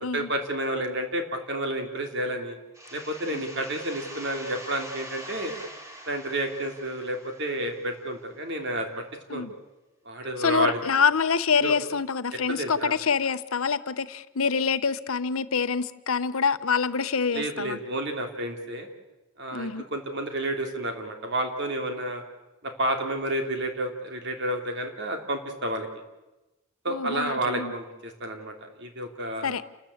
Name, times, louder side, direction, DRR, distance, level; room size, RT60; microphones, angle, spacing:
voice 1, 0.1-2.6 2.9-5.5 6.1-9.0 9.3-9.5 10.0-10.8 11.6-11.8 12.5-13.0 17.3-18.9 19.4-22.2 22.6-25.9 26.8-29.5, right 1 dB, 55° right, 4 dB, 3.3 m, -30 dB
sound 1, 2.7-8.2, right 1 dB, 15° right, 2.6 m, -43 dB
voice 2, 10.4-17.8 19.5-19.8 26.9-27.7 29.4-29.6, left 5 dB, 80° left, 13 dB, 0.9 m, -26 dB
29.0 x 13.5 x 8.8 m, 1.0 s
head